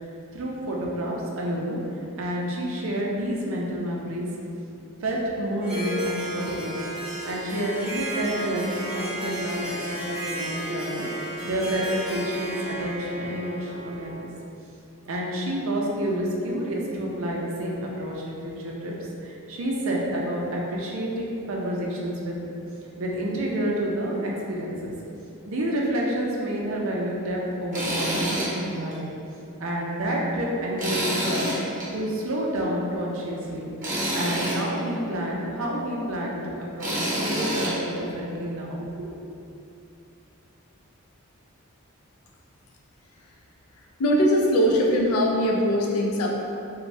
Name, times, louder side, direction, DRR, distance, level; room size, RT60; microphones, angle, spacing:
voice 1, 0.3-1.8 2.2-4.3 5.0-6.8 7.2-14.2 15.1-18.9 19.2-22.5 23.0-24.9 25.5-29.0 29.6-33.7 34.1-39.5, right 1 dB, 65° right, -3 dB, 0.5 m, -29 dB
Harp, 5.6-14.4, equal, 5° right, 0.8 m, -33 dB
Tools, 27.7-28.5 28.9-29.0 30.8-31.9 33.8-34.6 36.8-37.7, right 1 dB, 40° right, 0.8 m, -27 dB
voice 2, 44.0-46.3, equal, 80° left, -1 dB, 0.4 m, -21 dB
2.6 x 2.2 x 3.2 m, 2.7 s
head